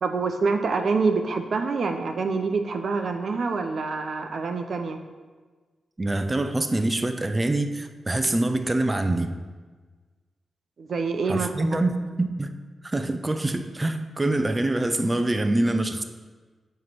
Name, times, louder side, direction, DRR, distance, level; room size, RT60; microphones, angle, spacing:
voice 1, 0.0-5.0 10.8-11.8, right 4 dB, 65° right, 6 dB, 0.6 m, -26 dB
voice 2, 6.0-9.4 11.3-12.5 12.8-16.0, right 2 dB, 25° right, 7 dB, 0.6 m, -25 dB
9.2 x 3.2 x 6.0 m, 1.4 s
cardioid pair, 50°, 0 cm